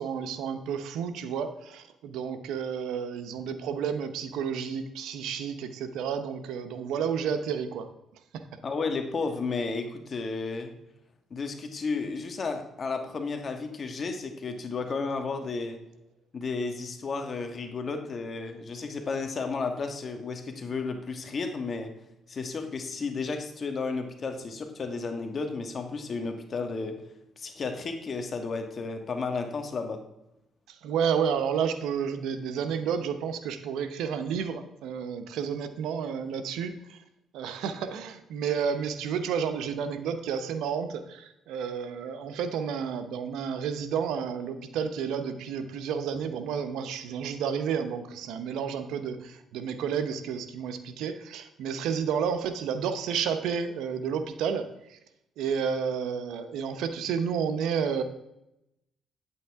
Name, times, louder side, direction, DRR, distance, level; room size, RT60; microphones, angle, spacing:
voice 1, 0.0-7.9 8.3-8.4 30.7-37.0 37.3-55.0 55.4-58.0, right 7 dB, 85° right, 9 dB, 0.7 m, -31 dB
voice 2, 8.6-10.7 11.3-15.8 16.3-21.9 22.3-27.0 27.4-30.0, left 4 dB, 45° left, 5 dB, 1.4 m, -33 dB
9.0 x 8.3 x 3.5 m, 0.85 s
cardioid pair, 90°, 0 cm